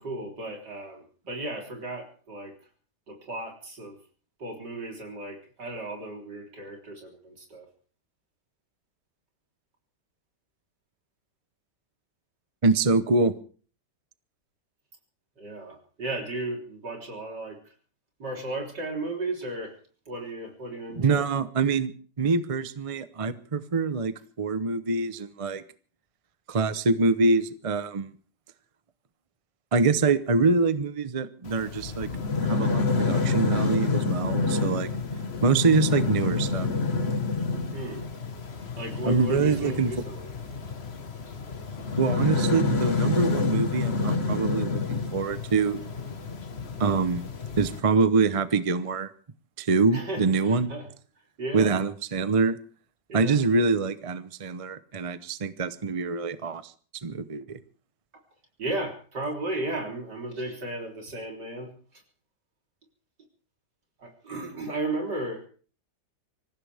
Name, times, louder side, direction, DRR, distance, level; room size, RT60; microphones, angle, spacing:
voice 1, 0.0-2.5 3.1-4.0 4.4-7.7 15.4-17.6 18.2-19.7 20.1-21.2 37.7-38.0 38.8-40.3 49.9-50.9 51.4-51.8 53.1-53.4 58.6-61.7 64.0-65.5, right 2 dB, 75° right, 1 dB, 4.3 m, -35 dB
voice 2, 12.6-13.3 21.0-21.9 22.2-25.6 26.5-28.1 29.7-32.1 32.4-34.9 35.4-36.7 39.0-39.9 42.0-45.8 46.8-47.3 47.6-49.1 49.6-50.7 51.5-52.6 53.1-56.6 57.0-57.6, right 4 dB, 30° right, 13 dB, 0.6 m, -25 dB
sound 1, 31.5-47.8, left 4 dB, 40° left, 1.6 m, -28 dB
25.5 x 15.0 x 3.5 m, 0.41 s
omnidirectional pair, 1.8 m